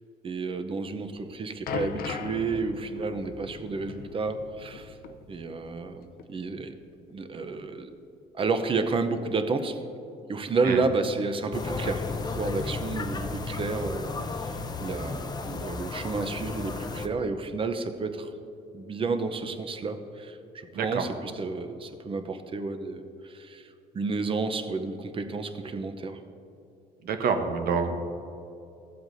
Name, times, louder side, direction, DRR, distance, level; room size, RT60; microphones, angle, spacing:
voice 1, 0.2-5.0 5.3-6.7 7.1-7.9 8.3-9.8 10.3-18.3 18.7-26.2, right 4 dB, 30° right, 8 dB, 0.7 m, -31 dB
sound 1, 1.1-5.9 6.2-6.4 7.1-7.2, left 6 dB, 65° left, 0.6 m, -39 dB
sound 2, 11.5-17.1, left 3 dB, 25° left, 0.6 m, -33 dB
voice 2, 27.0-28.0, right 5 dB, 65° right, 6 dB, 1.0 m, -27 dB
14.5 x 7.8 x 2.7 m, 2.7 s
cardioid pair, 110°, 17 cm